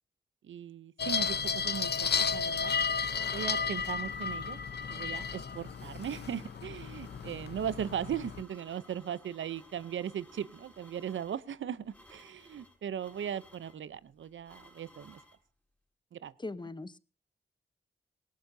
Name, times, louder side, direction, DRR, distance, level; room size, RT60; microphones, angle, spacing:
voice 1, 0.4-2.8 3.3-4.6 4.9-15.2 16.1-16.3, right 9 dB, 85° right, 0.6 m, -38 dB
sound 1, 1.0-8.4, left 6 dB, 60° left, 0.8 m, -33 dB
sound 2, 3.7-15.4, left 1 dB, 5° left, 4.5 m, -57 dB
voice 2, 16.4-17.0, left 2 dB, 25° left, 0.9 m, -40 dB
18.5 x 18.0 x 2.7 m
cardioid pair, 70°, 19 cm